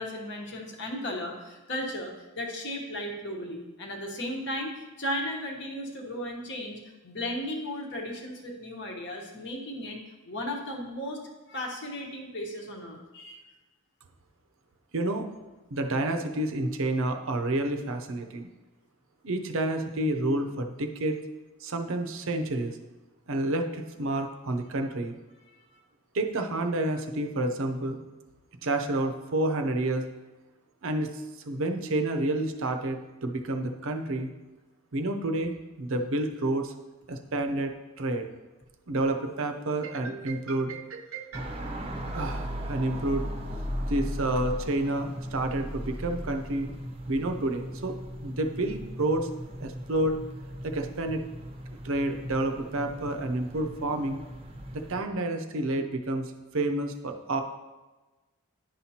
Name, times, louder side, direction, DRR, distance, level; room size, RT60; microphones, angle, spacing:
voice 1, 0.0-4.7 5.0-10.0 10.3-11.2 11.5-13.4, left 1 dB, 50° left, 1 dB, 1.1 m, -35 dB
voice 2, 14.9-15.3 15.7-18.5 19.2-21.2 21.6-22.8 23.3-25.1 26.1-28.0 28.6-30.0 30.8-31.1 31.4-34.3 34.9-36.7 37.1-38.3 38.9-41.5 42.1-43.3 43.9-46.7 47.1-48.0 48.2-49.3 49.6-50.2 50.6-51.2 51.8-54.2 54.7-57.4, right 2 dB, 65° right, 5 dB, 0.6 m, -29 dB
sound 1, 41.3-55.0, equal, 25° right, 0.7 m, -37 dB
10.0 x 5.9 x 2.8 m, 1.2 s
head